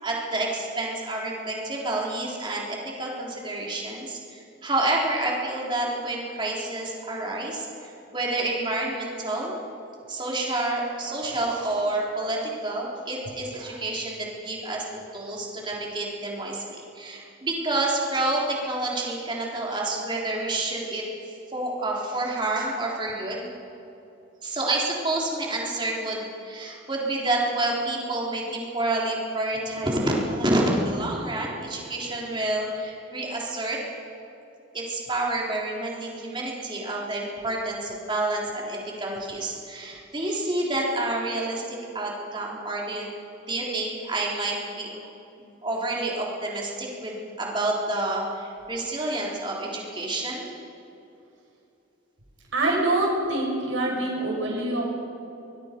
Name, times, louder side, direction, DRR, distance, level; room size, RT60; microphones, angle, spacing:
voice 1, 0.0-9.6 10.1-14.8 15.1-23.5 24.4-33.8 34.7-43.1 43.5-44.9 45.4-50.5, right 2 dB, 25° right, -3 dB, 3.8 m, -29 dB
voice 2, 52.5-54.9, right 2 dB, 80° right, -1 dB, 6.2 m, -25 dB
23.0 x 21.0 x 5.3 m, 2.8 s
head